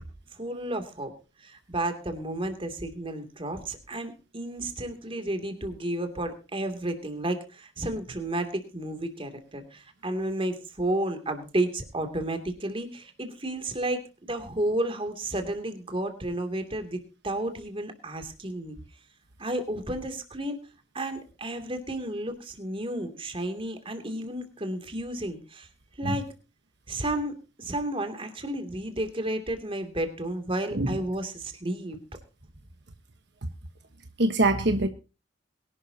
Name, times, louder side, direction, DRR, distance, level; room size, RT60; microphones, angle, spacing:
voice 1, 0.3-1.1 1.4-18.8 19.4-20.6 20.9-25.7 26.0-26.3 26.9-32.0, right 1 dB, 30° right, 7 dB, 2.8 m, -32 dB
voice 2, 34.2-34.9, right 2 dB, 60° right, 7 dB, 1.3 m, -23 dB
22.5 x 12.0 x 2.9 m, 0.32 s
head